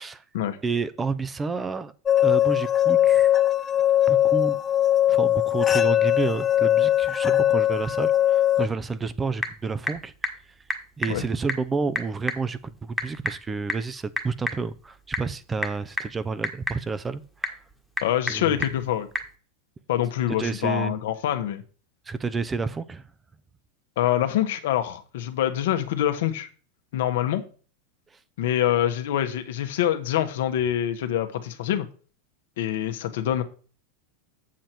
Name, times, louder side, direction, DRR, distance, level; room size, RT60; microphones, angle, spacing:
voice 1, 0.6-1.9 2.2-3.3 4.1-4.6 5.1-10.1 11.0-17.6 18.3-18.5 20.4-21.0 22.1-23.0, right 4 dB, 15° right, 0.7 m, -30 dB
sound 1, 2.1-8.7, left 12 dB, 25° left, 0.6 m, -20 dB
Typing / Telephone, 8.8-19.4, left 1 dB, ahead, 1.5 m, -34 dB
voice 2, 18.0-19.1 19.9-21.6 24.0-26.5 26.9-27.4 28.4-31.9 32.6-33.4, left 11 dB, 75° left, 1.3 m, -25 dB
7.5 x 7.4 x 4.4 m
hypercardioid pair, 115°, 0 cm